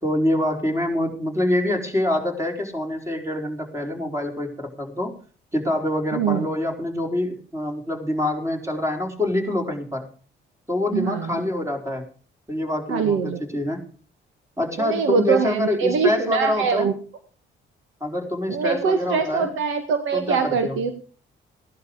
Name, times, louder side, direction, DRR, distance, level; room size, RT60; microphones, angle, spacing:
voice 1, 0.0-5.1 5.5-10.1 10.7-12.0 12.5-13.8 14.6-16.9 18.0-19.5 20.1-20.8, left 1 dB, 15° right, 3 dB, 4.6 m, -25 dB
voice 2, 6.1-6.5 10.9-11.3 12.9-13.4 14.8-16.9 18.5-20.9, right 6 dB, 85° right, 7 dB, 1.9 m, -23 dB
16.5 x 11.5 x 5.0 m, 0.41 s
cardioid pair, 90°, 20 cm